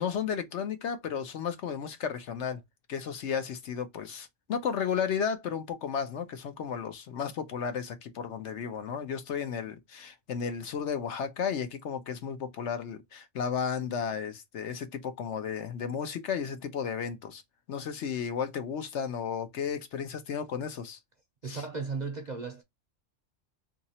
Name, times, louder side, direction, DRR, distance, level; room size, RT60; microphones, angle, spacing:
voice 1, 0.0-2.6 2.9-17.4 17.7-21.0 21.4-21.6, left 7 dB, 65° left, 1.0 m, -33 dB
voice 2, 21.4-22.6, right 4 dB, 45° right, 0.6 m, -35 dB
2.8 x 2.8 x 4.1 m
omnidirectional pair, 1.3 m